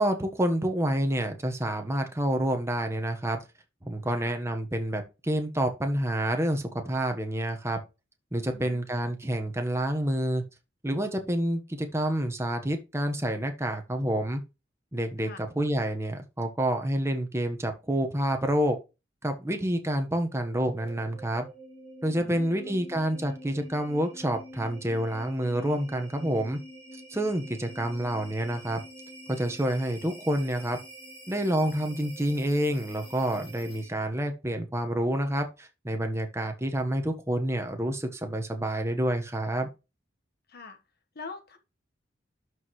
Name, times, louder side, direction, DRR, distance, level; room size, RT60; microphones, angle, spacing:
voice 1, 0.0-3.4 3.8-7.8 8.3-10.4 10.8-14.4 14.9-18.8 19.2-21.5 22.0-26.6 27.1-28.8 29.3-30.8 31.3-39.7, right 1 dB, 15° right, 1.3 m, -28 dB
voice 2, 8.5-8.8 15.2-15.4 22.2-23.0 40.5-40.8 41.1-41.6, left 3 dB, 55° left, 1.4 m, -44 dB
sound 1, 20.5-34.1, equal, 30° left, 4.8 m, -47 dB
12.0 x 4.8 x 3.2 m
head